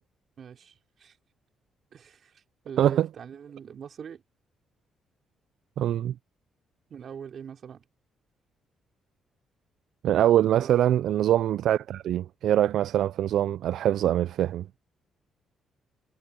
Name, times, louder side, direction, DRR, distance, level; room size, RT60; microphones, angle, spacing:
voice 1, 0.4-1.2 1.9-4.2 6.9-7.8 10.5-10.8, right 7 dB, 55° right, 3.5 m, -42 dB
voice 2, 2.8-3.1 5.8-6.1 10.0-14.8, right 11 dB, 75° right, 0.4 m, -23 dB
cardioid pair, 90°, 0 cm